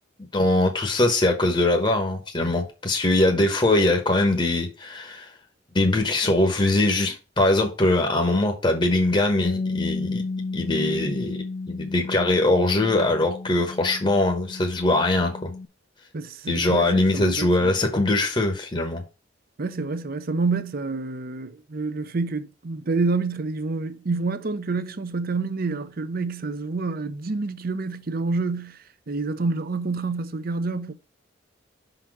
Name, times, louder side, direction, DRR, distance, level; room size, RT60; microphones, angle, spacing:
voice 1, 0.3-5.3 5.7-10.2 10.5-11.4 11.7-15.5 16.5-19.0, left 2 dB, 25° left, 0.9 m, -22 dB
Bass guitar, 9.4-15.7, left 3 dB, 45° left, 0.3 m, -32 dB
voice 2, 16.1-17.7 19.6-30.9, right 3 dB, 50° right, 0.6 m, -28 dB
5.6 x 3.9 x 6.0 m
head